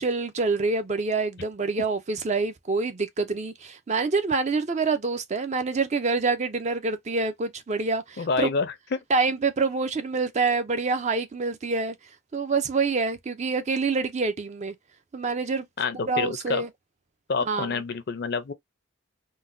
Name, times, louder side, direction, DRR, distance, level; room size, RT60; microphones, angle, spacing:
voice 1, 0.0-8.5 9.1-12.0 12.3-14.7 15.1-15.7 16.1-16.7 17.5-17.7, right 4 dB, 35° right, 0.4 m, -26 dB
voice 2, 8.2-9.0 15.8-16.6 17.3-18.5, left 4 dB, 50° left, 0.5 m, -28 dB
3.8 x 2.1 x 2.5 m
head